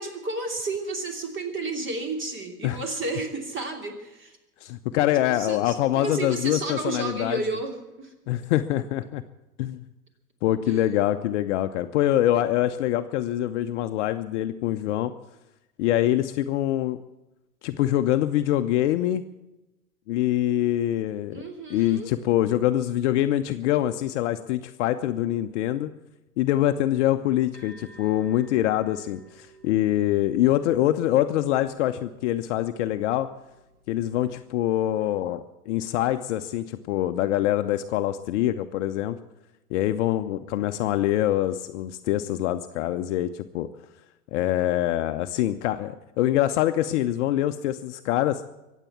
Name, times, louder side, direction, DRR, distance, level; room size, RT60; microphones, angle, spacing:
voice 1, 0.0-4.4 5.1-8.1 10.7-10.9 21.3-22.1, right 2 dB, 25° right, 5 dB, 3.1 m, -32 dB
voice 2, 4.6-7.4 8.3-9.2 9.6-9.8 10.4-15.1 15.8-17.0 17.6-19.2 20.1-21.4 21.7-25.9 26.4-33.3 33.9-39.2 39.7-43.7 44.3-48.4, left 13 dB, 50° left, 9 dB, 0.8 m, -24 dB
sound 1, 27.5-35.0, right 2 dB, 80° right, 4.3 m, -54 dB
23.5 x 8.3 x 7.2 m, 0.99 s
figure-of-eight pair, 90°, 45 cm